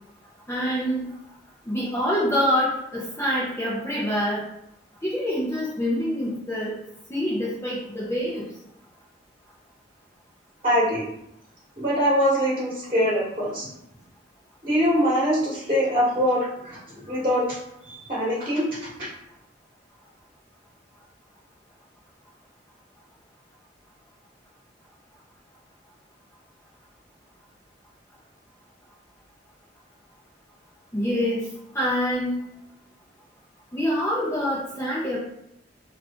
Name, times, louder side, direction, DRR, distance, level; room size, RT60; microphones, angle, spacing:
voice 1, 0.5-1.1 1.7-4.4 5.0-6.7 7.1-8.5 30.9-31.5 31.7-32.4 33.7-35.2, equal, 15° left, -7 dB, 0.6 m, -25 dB
voice 2, 10.6-11.0 11.8-13.7 14.6-16.8 17.1-17.4 17.9-18.6 19.0-19.1, equal, 30° right, -8 dB, 1.2 m, -23 dB
3.1 x 2.5 x 3.5 m, 0.80 s
head